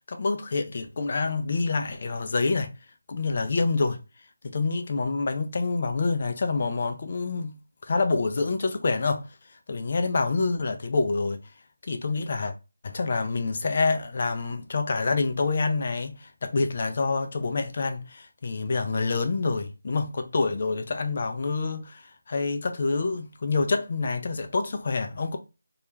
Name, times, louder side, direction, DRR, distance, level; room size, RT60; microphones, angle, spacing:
voice 1, 0.1-2.7 3.1-4.0 4.4-7.5 7.8-9.2 9.7-11.4 11.9-12.5 12.8-25.4, left 3 dB, 40° left, 0.3 m, -27 dB
2.3 x 2.1 x 3.0 m
figure-of-eight pair, 170°, 0 cm